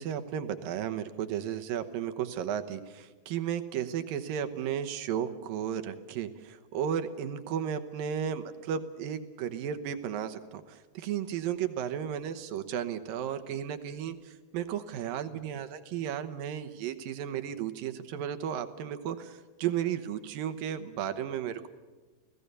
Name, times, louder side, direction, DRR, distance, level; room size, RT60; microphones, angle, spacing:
voice 1, 0.0-21.7, right 9 dB, 75° right, 9 dB, 2.7 m, -34 dB
29.5 x 18.0 x 6.8 m, 1.3 s
omnidirectional pair, 4.3 m